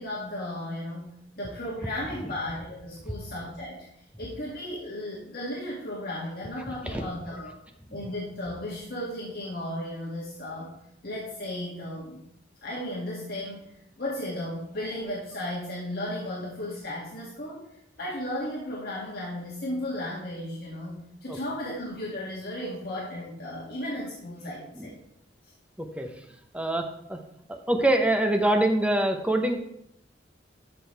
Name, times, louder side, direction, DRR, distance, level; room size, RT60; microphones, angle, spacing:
voice 1, 0.0-3.9 4.2-7.5 7.9-10.7 11.0-12.2 12.6-17.6 18.0-25.0, left 1 dB, 55° left, -5 dB, 2.4 m, -35 dB
voice 2, 6.7-7.0 7.9-8.0 21.3-21.4 24.8-24.9 25.8-26.1 26.5-27.2 27.5-29.6, right 1 dB, 5° right, 5 dB, 0.9 m, -25 dB
13.5 x 6.2 x 3.4 m, 0.76 s
head